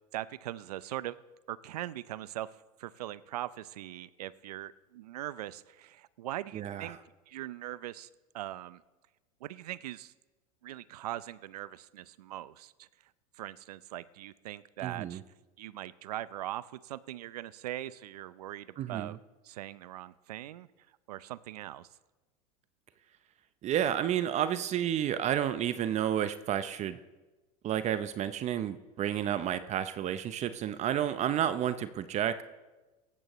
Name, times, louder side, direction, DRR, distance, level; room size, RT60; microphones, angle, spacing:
voice 1, 0.1-1.2 1.5-2.5 2.8-7.0 7.3-8.1 8.3-8.8 9.4-10.1 10.6-12.9 13.4-15.2 15.6-19.2 19.4-20.7 21.1-21.9, right 14 dB, 80° right, 18 dB, 0.6 m, -41 dB
voice 2, 6.5-7.0 14.8-15.2 18.8-19.2 23.6-27.0 27.6-32.4, right 10 dB, 35° right, 12 dB, 0.7 m, -31 dB
18.5 x 14.5 x 3.1 m, 1.2 s
hypercardioid pair, 105°, 20 cm